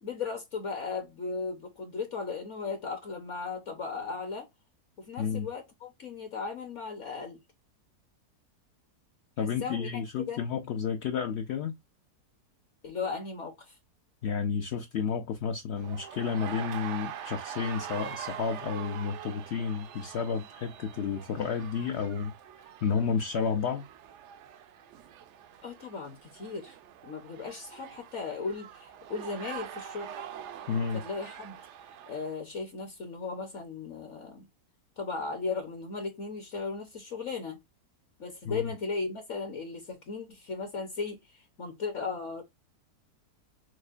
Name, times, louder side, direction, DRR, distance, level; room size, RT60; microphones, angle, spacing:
voice 1, 0.0-4.5 5.0-7.4 9.6-9.9 10.3-10.4 12.8-13.8 25.6-26.7 27.0-30.2 30.9-31.6 32.1-34.4 35.0-37.6 38.2-42.4, left 4 dB, 55° left, 1.0 m, -36 dB
voice 2, 5.2-5.5 9.4-11.7 14.2-22.3 22.8-23.9 30.7-31.0 38.4-38.7, left 6 dB, 75° left, 0.6 m, -31 dB
sound 1, 15.8-32.3, right 9 dB, 75° right, 0.6 m, -44 dB
6.2 x 2.2 x 2.4 m
omnidirectional pair, 1.7 m